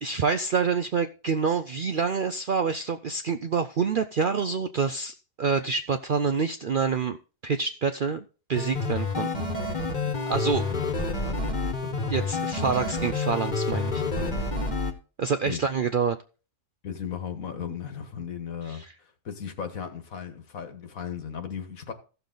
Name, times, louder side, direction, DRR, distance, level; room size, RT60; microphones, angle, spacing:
voice 1, 0.0-7.2 7.4-8.2 8.5-9.4 10.3-10.7 12.1-14.0 15.2-16.2 18.7-18.9, right 5 dB, 60° right, 0.5 m, -27 dB
sound 1, 8.6-14.9, left 3 dB, 35° left, 1.4 m, -28 dB
voice 2, 10.7-12.4 14.1-14.4 15.4-15.6 16.8-21.9, left 7 dB, 75° left, 1.7 m, -37 dB
14.5 x 6.9 x 3.9 m
omnidirectional pair, 1.5 m